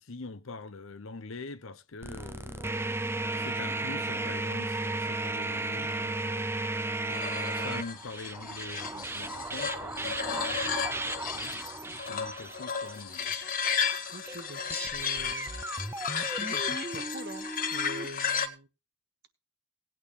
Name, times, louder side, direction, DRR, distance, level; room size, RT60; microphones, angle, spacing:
voice 1, 0.0-3.0 3.4-6.5 7.1-10.8 11.3-13.4, left 3 dB, 65° left, 0.9 m, -44 dB
sound 1, 2.0-18.1, right 2 dB, 10° right, 0.6 m, -35 dB
sound 2, 7.1-18.5, left 7 dB, 40° left, 1.2 m, -34 dB
voice 2, 14.1-15.5 16.2-18.7, right 2 dB, 50° right, 1.3 m, -44 dB
18.5 x 8.9 x 3.4 m
head